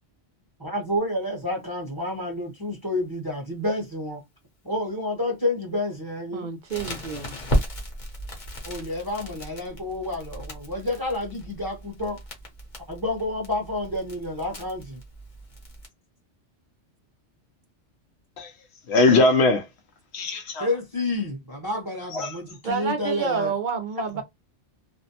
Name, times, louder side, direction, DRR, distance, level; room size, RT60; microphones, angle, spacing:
voice 1, 0.6-4.2 4.6-6.5 8.6-12.2 12.9-15.0 20.6-23.5 24.1-24.2, left 1 dB, 20° right, 0.8 m, -29 dB
voice 2, 6.3-7.4 22.6-24.2, right 6 dB, 60° right, 0.5 m, -29 dB
Crackle, 6.7-15.9, equal, 45° left, 0.9 m, -34 dB
voice 3, 18.9-19.6 20.1-20.7 22.1-22.3, left 3 dB, 70° left, 0.9 m, -20 dB
2.5 x 2.1 x 2.7 m
omnidirectional pair, 1.2 m